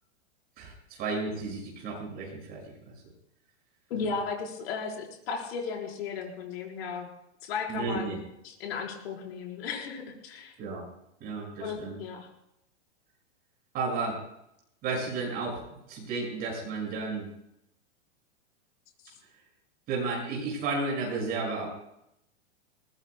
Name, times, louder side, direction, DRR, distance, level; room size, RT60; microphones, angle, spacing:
voice 1, 0.6-2.9 7.7-8.2 10.6-10.9 11.2-12.0 13.7-14.2 14.8-15.6 15.9-17.3 19.9-21.7, right 3 dB, 25° right, -2 dB, 6.9 m, -33 dB
voice 2, 3.9-7.1 7.4-8.2 8.4-10.5 11.6-12.3, left 5 dB, 55° left, 0 dB, 4.7 m, -35 dB
22.0 x 19.0 x 2.3 m, 0.79 s
supercardioid pair, 165°, 36 cm